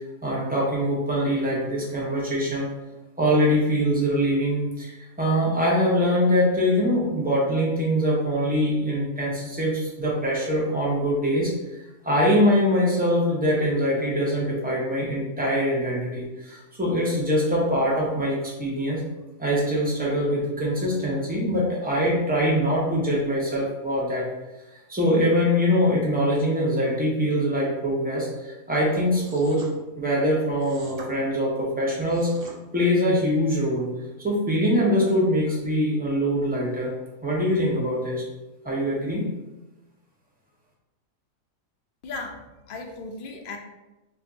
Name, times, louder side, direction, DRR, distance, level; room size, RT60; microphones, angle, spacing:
voice 1, 0.2-2.7 3.2-11.5 12.0-19.0 19.4-24.2 24.9-29.6 30.0-32.3 32.7-33.9 34.2-36.9 37.2-38.2 38.6-39.3, equal, 10° right, -5 dB, 0.7 m, -23 dB
sound 1, 29.2-29.7 30.6-31.1 31.9-32.6, right 3 dB, 55° right, 0.7 m, -43 dB
voice 2, 42.0-43.6, left 3 dB, 75° left, 2 dB, 0.4 m, -36 dB
5.1 x 2.6 x 2.7 m, 1.0 s
omnidirectional pair, 1.5 m